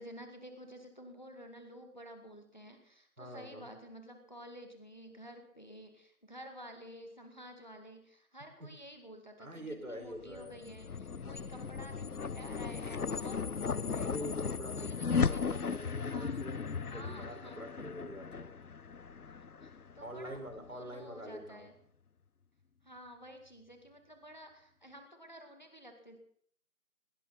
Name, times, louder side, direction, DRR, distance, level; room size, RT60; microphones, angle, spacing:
voice 1, 0.0-14.3 14.7-15.7 16.1-16.4 16.9-17.7 19.6-21.7 22.8-26.2, equal, 30° left, 5 dB, 2.0 m, -51 dB
voice 2, 3.2-3.7 8.6-8.7 9.4-10.5 14.0-18.5 20.0-21.7, equal, 70° right, 4 dB, 5.1 m, -45 dB
sound 1, 10.2-20.7, left 5 dB, 80° left, 0.8 m, -36 dB
20.0 x 17.5 x 4.2 m, 0.62 s
figure-of-eight pair, 175°, 44 cm